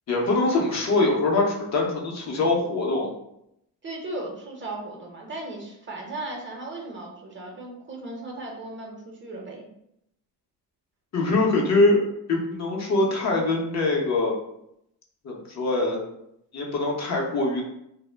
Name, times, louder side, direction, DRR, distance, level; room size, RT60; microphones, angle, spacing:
voice 1, 0.1-3.1 11.1-12.0 12.3-14.4 15.2-16.0 16.5-17.6, left 2 dB, 45° left, -1 dB, 0.8 m, -23 dB
voice 2, 3.8-9.6, right 2 dB, 30° right, 0 dB, 0.7 m, -36 dB
2.1 x 2.0 x 3.3 m, 0.79 s
supercardioid pair, 70°, 38 cm